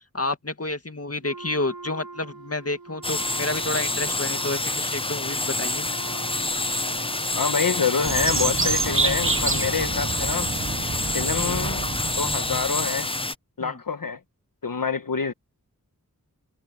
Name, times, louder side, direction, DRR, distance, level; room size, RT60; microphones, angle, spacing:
voice 1, 0.1-5.9 13.6-13.8, left 2 dB, 45° left, 2.1 m, -30 dB
Wind instrument woodwind instrument, 1.2-10.0, right 4 dB, 75° right, 5.2 m, -43 dB
sound 1, 3.0-13.3, left 2 dB, 15° left, 0.6 m, -27 dB
voice 2, 7.3-10.5 11.1-11.9 12.2-13.1 13.6-14.2 14.6-15.3, left 5 dB, 70° left, 1.1 m, -26 dB
sound 2, 8.0-13.0, right 4 dB, 35° right, 0.8 m, -28 dB
wide cardioid pair, 45°, 35 cm